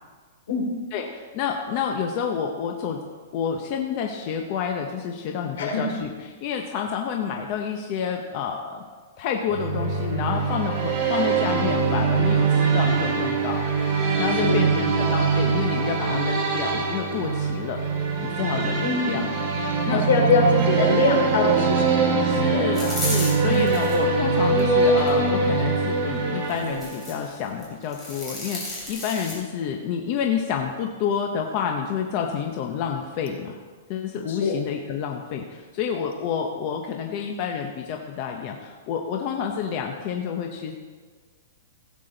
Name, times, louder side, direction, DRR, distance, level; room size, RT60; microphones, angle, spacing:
voice 1, 0.9-3.0 3.3-8.8 9.2-13.6 14.2-17.8 18.2-19.3 19.8-20.0 22.2-33.6 33.9-40.7, left 7 dB, 30° left, 2 dB, 0.8 m, -29 dB
sound 1, 9.5-27.2, right 4 dB, 30° right, 2.1 m, -23 dB
voice 2, 18.8-19.2 19.9-22.2 22.5-22.9 23.4-23.7 34.3-34.6, left 4 dB, 70° left, 1 dB, 3.0 m, -23 dB
sound 2, 22.7-24.0 24.5-25.1 26.5-27.3 27.6-29.3, left 1 dB, 10° left, 3.0 m, -33 dB
16.0 x 8.3 x 3.9 m, 1.5 s
hypercardioid pair, 175°, 0 cm